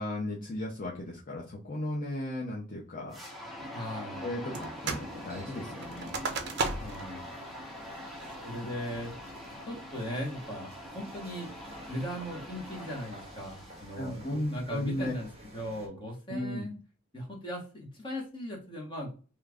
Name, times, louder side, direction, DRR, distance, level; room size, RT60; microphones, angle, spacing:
voice 1, 0.0-3.2 4.2-6.1 13.9-15.1 16.3-16.7, left 1 dB, 40° left, -3 dB, 0.6 m, -35 dB
sound 1, 3.1-14.4, left 1 dB, ahead, 0.9 m, -44 dB
voice 2, 3.7-4.3 6.8-7.2 8.4-9.1 9.7-11.5 11.9-16.8 17.1-19.1, equal, 25° left, -1 dB, 1.1 m, -38 dB
sound 2, 4.5-5.1 5.4-7.1 7.5-7.6 8.1-8.5 9.0-9.5, right 4 dB, 55° right, 0.5 m, -35 dB
sound 3, 4.6-15.9, right 1 dB, 30° right, 1.0 m, -52 dB
3.1 x 2.4 x 3.4 m, 0.36 s
head